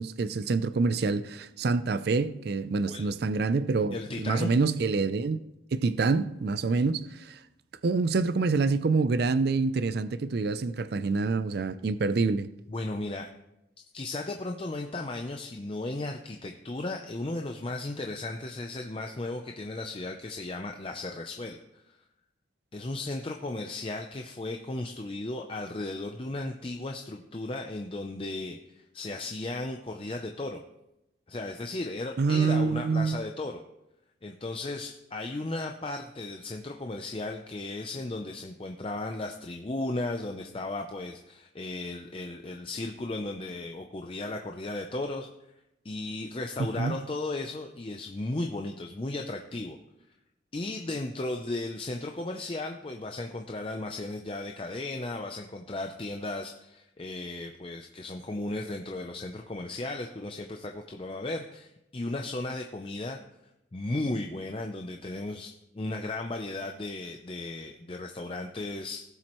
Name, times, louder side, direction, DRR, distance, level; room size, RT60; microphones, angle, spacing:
voice 1, 0.0-5.4 5.7-7.4 7.8-12.5 32.2-33.2 46.6-47.0, right 4 dB, 55° right, 0.4 m, -26 dB
voice 2, 2.9-3.2 3.9-4.5 12.7-13.3 13.9-22.0 22.7-30.6 31.3-33.6 34.2-45.3 45.8-49.8 50.5-63.2 63.7-69.0, left 2 dB, 30° left, 0.5 m, -35 dB
17.5 x 7.5 x 3.0 m
head